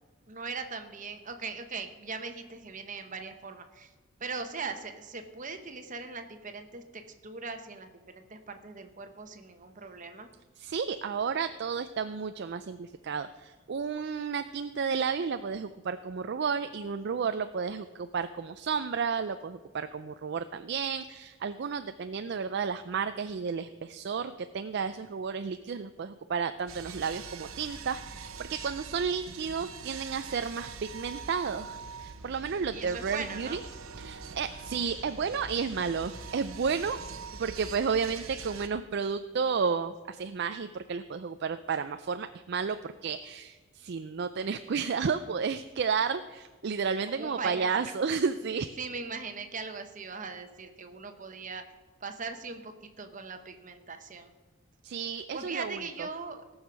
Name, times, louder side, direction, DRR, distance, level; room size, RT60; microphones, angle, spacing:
voice 1, 0.3-3.9 4.2-10.3 32.7-33.6 47.1-47.9 48.8-51.6 52.0-54.3 55.3-56.4, right 4 dB, 35° right, 7 dB, 1.0 m, -40 dB
voice 2, 10.6-33.6 34.0-37.0 37.4-48.8 54.8-55.8, right 6 dB, 50° right, 10 dB, 0.4 m, -32 dB
sound 1, 26.7-38.7, right 5 dB, 80° right, 0.9 m, -44 dB
17.5 x 6.4 x 6.1 m, 1.3 s
head